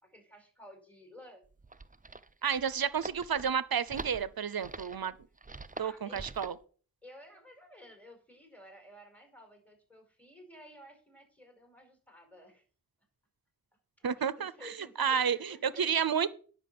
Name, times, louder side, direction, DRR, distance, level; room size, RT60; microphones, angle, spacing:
voice 1, 0.0-1.4 5.7-6.3 7.0-12.6 14.0-16.2, left 1 dB, 5° left, 5.1 m, -54 dB
sound 1, 1.4-6.6, right 3 dB, 20° right, 0.7 m, -45 dB
voice 2, 2.4-5.1 5.8-6.6 14.0-14.7 15.0-16.3, right 7 dB, 80° right, 0.7 m, -31 dB
10.0 x 5.9 x 7.7 m
wide cardioid pair, 40°, 36 cm